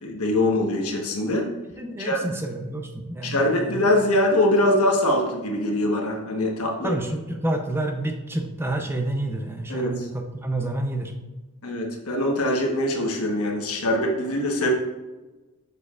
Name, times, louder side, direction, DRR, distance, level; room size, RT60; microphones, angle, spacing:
voice 1, 0.0-1.5 2.0-2.2 3.2-7.0 9.7-10.1 11.6-14.7, left 1 dB, 80° left, 0 dB, 1.2 m, -23 dB
voice 2, 1.8-3.8 6.8-11.1, right 1 dB, 10° right, 4 dB, 0.5 m, -29 dB
6.8 x 6.7 x 2.4 m, 1.1 s
head